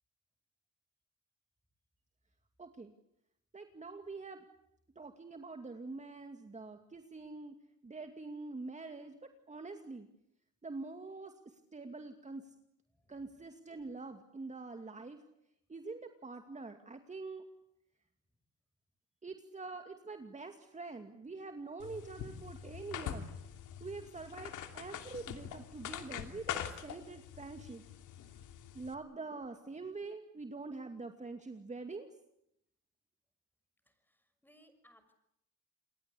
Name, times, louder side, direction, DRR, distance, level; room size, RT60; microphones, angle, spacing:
voice 1, 2.6-2.9 3.5-4.4 5.0-7.6 7.8-9.2 9.5-10.1 10.6-12.5 13.1-15.2 15.7-17.4 19.2-23.3 23.8-27.8 28.7-32.1, right 3 dB, 25° right, 6 dB, 2.4 m, -45 dB
voice 2, 12.9-13.3 33.9-35.1, equal, 5° left, 10 dB, 6.3 m, -66 dB
sound 1, 21.8-28.9, left 9 dB, 85° left, 2.9 m, -44 dB
29.0 x 22.0 x 8.5 m, 0.79 s
cardioid pair, 90°, 30 cm